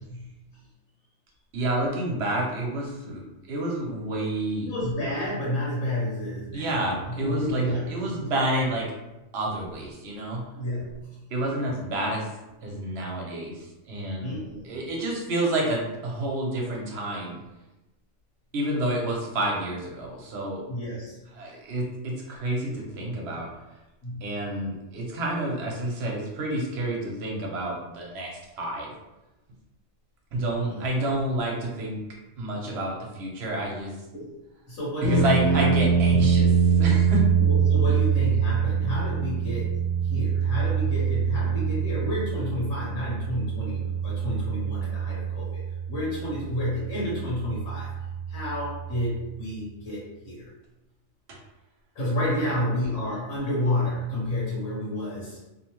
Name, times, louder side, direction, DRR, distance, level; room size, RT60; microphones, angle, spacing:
voice 1, 1.5-3.2 3.5-4.7 6.5-8.9 9.3-10.4 11.3-12.3 12.6-14.4 14.6-17.4 18.5-20.6 21.3-23.5 24.2-28.9 30.3-32.0 32.4-33.9 35.0-37.3 51.3-51.4, right 1 dB, 60° right, -1 dB, 0.8 m, -29 dB
voice 2, 4.6-6.7 7.0-8.3 10.5-11.1 14.2-14.8 20.7-21.2 24.0-24.3 30.6-30.8 34.1-34.3 34.7-35.8 37.4-39.8 40.0-45.6 45.9-47.9 48.3-50.5 51.9-55.4, left 1 dB, 70° left, -7 dB, 1.2 m, -30 dB
sound 1, 35.0-49.1, right 7 dB, 30° left, 0.5 m, -25 dB
2.7 x 2.1 x 2.9 m, 1.0 s
omnidirectional pair, 1.4 m